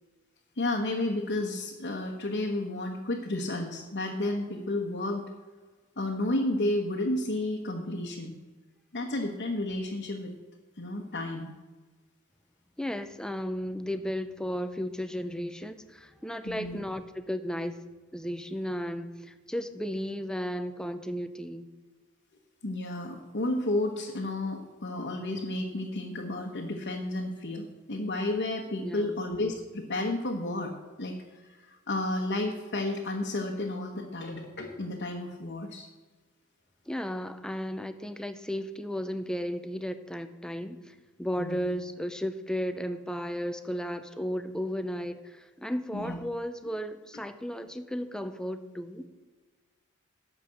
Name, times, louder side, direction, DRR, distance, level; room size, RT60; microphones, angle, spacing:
voice 1, 0.6-5.2 6.0-8.3 8.9-10.3 10.8-11.5 16.4-16.8 22.6-30.7 31.0-31.2 31.4-35.9 41.4-41.7 45.9-46.2, left 2 dB, 50° left, -1 dB, 1.1 m, -32 dB
voice 2, 12.8-17.8 18.1-21.7 28.8-29.2 36.9-49.1, equal, 5° left, 9 dB, 0.6 m, -34 dB
11.5 x 5.3 x 7.6 m, 1.3 s
head